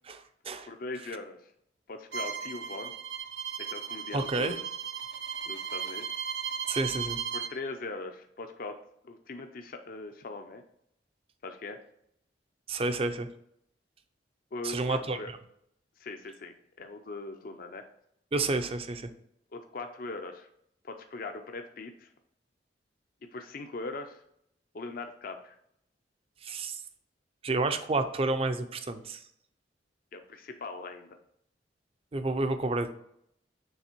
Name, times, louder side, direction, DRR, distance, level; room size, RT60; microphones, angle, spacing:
voice 1, 0.1-0.7 4.1-4.6 6.7-7.2 12.7-13.3 14.6-15.2 18.3-19.1 26.4-26.8 27.4-29.2 32.1-33.0, right 3 dB, 35° right, 9 dB, 0.5 m, -30 dB
voice 2, 0.7-1.5 1.9-2.9 3.7-4.6 5.4-6.1 7.3-8.8 9.0-10.6 11.4-11.8 14.5-15.3 16.0-17.9 19.5-20.5 20.8-22.1 23.3-24.2 24.7-25.6 30.1-31.2, left 3 dB, 55° left, 6 dB, 0.5 m, -40 dB
Bowed string instrument, 2.1-7.5, right 7 dB, 85° right, 0.8 m, -36 dB
7.0 x 3.4 x 4.4 m, 0.73 s
head